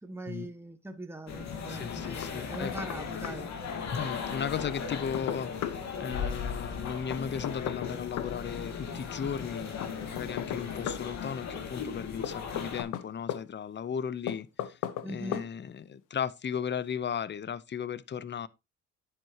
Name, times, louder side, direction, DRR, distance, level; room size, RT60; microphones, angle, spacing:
voice 1, 0.0-3.5 15.0-15.5, right 1 dB, 10° right, 1.5 m, -41 dB
sound 1, 1.3-12.8, left 6 dB, 65° left, 2.4 m, -37 dB
voice 2, 1.7-2.7 3.9-14.8 15.1-18.5, left 7 dB, 35° left, 0.7 m, -36 dB
Knock, 2.2-3.0 3.2-3.3 4.6-5.8 7.1-8.3 9.8-11.0 12.2-13.4 14.3-15.1 15.3-15.5, left 11 dB, 90° left, 1.0 m, -36 dB
10.5 x 7.9 x 2.9 m
cardioid pair, 90°, 30 cm